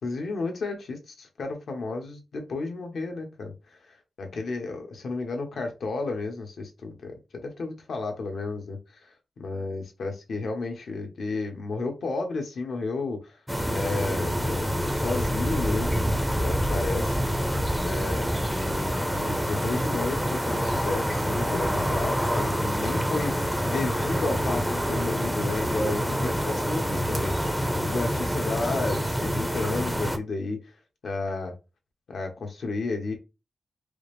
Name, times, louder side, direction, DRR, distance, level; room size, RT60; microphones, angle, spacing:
voice 1, 0.0-9.1 9.4-13.4 13.7-17.2 17.8-30.7 31.0-31.5 32.1-33.1, left 3 dB, 60° left, 3 dB, 1.0 m, -32 dB
sound 1, 13.5-30.2, equal, ahead, 0.5 m, -27 dB
4.8 x 2.0 x 3.2 m, 0.26 s
wide cardioid pair, 155°, 0 cm